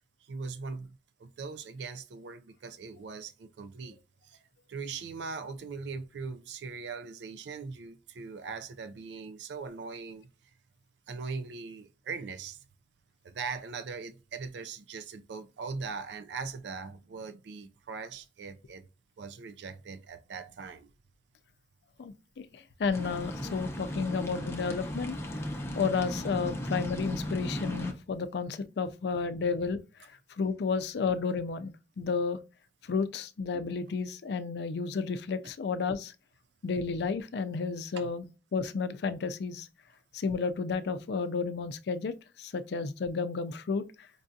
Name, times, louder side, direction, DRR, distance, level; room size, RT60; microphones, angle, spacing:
voice 1, 0.2-4.0 4.2-4.4 4.7-10.3 11.1-12.6 13.2-18.8 19.2-20.9 38.0-38.1, right 4 dB, 75° right, 0.4 m, -40 dB
voice 2, 22.0-25.2 25.7-32.4 32.8-36.1 36.6-39.7 40.1-44.1, left 5 dB, 65° left, 0.4 m, -32 dB
sound 1, 22.9-27.9, equal, 15° left, 0.7 m, -36 dB
5.2 x 2.6 x 2.3 m
head